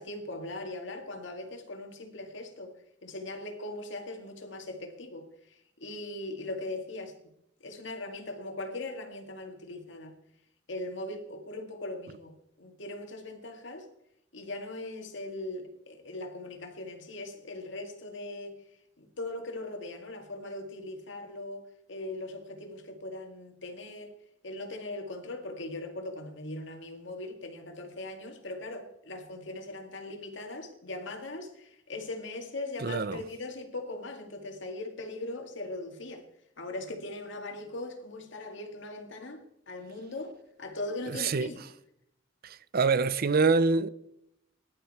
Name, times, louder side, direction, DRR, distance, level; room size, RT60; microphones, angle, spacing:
voice 1, 0.0-5.3 5.8-7.2 7.6-10.1 10.7-13.9 14.3-18.6 19.0-24.1 24.4-36.2 36.6-39.4 39.7-41.6, left 2 dB, 70° left, 2.2 m, -40 dB
voice 2, 32.8-33.2 41.1-41.5 42.4-43.9, right 4 dB, 50° right, 0.6 m, -26 dB
20.0 x 11.5 x 4.3 m
head